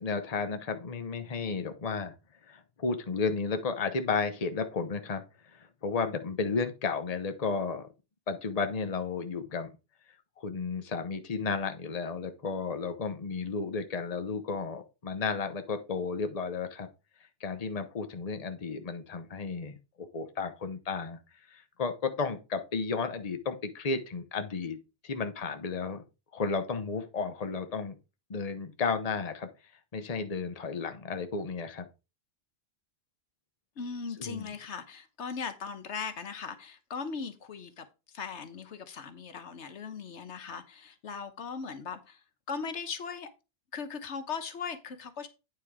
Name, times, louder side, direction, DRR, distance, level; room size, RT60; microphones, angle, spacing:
voice 1, 0.0-2.1 2.5-5.2 5.5-7.9 8.3-9.7 10.4-16.9 17.4-21.2 21.5-24.8 25.0-26.0 26.3-28.0 28.3-29.5 29.9-31.9 34.2-34.5, left 4 dB, 35° left, 1.0 m, -33 dB
voice 2, 33.8-37.9 38.1-42.2 42.5-43.3 43.7-45.3, left 5 dB, 90° left, 1.3 m, -38 dB
9.2 x 4.4 x 4.8 m
omnidirectional pair, 1.1 m